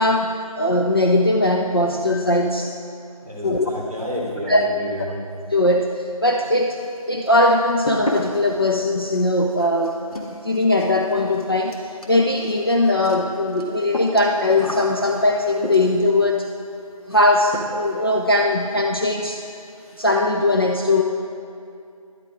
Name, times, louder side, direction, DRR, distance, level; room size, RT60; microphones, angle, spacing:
voice 1, 0.0-2.7 3.4-3.7 4.5-4.6 5.5-6.8 7.1-10.0 10.3-11.8 12.1-16.5 17.1-19.5 20.0-21.0, left 2 dB, 40° left, 1 dB, 0.6 m, -20 dB
voice 2, 3.2-5.3, left 1 dB, 5° left, -17 dB, 1.9 m, -29 dB
sound 1, 6.4-7.0 7.3-16.2 17.1-17.3 17.5-18.0 18.3-18.4 18.8-18.9 19.1-19.3 19.6-20.1, left 1 dB, 75° left, 2.2 m, -33 dB
11.5 x 11.5 x 5.1 m, 2.5 s
figure-of-eight pair, 175°, 19 cm